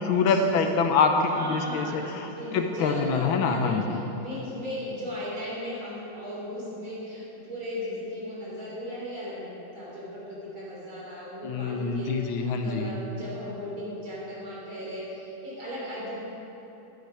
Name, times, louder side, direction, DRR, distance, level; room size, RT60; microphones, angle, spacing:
voice 1, 0.0-4.0 11.4-13.0, left 4 dB, 85° left, 5 dB, 1.7 m, -25 dB
voice 2, 1.3-9.5 9.7-16.2, equal, 90° right, -7 dB, 4.1 m, -37 dB
11.5 x 9.4 x 4.9 m, 2.9 s
omnidirectional pair, 2.2 m